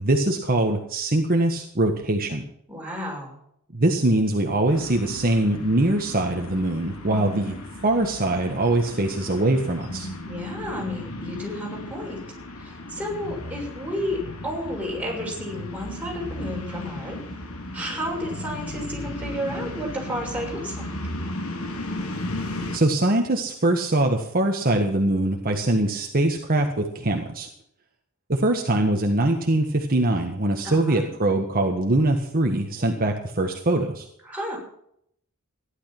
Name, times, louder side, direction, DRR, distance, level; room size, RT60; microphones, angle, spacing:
voice 1, 0.0-2.4 3.7-7.5 7.8-10.1 22.7-27.5 28.3-34.1, right 1 dB, 45° right, 3 dB, 1.5 m, -22 dB
voice 2, 2.7-3.4 7.0-7.5 10.3-12.2 12.6-17.2 17.7-21.0 30.6-31.1 34.3-34.6, equal, 5° right, -3 dB, 6.9 m, -32 dB
sound 1, 4.7-22.8, left 1 dB, 75° left, 2.7 m, -35 dB
15.5 x 11.5 x 6.0 m, 0.72 s
head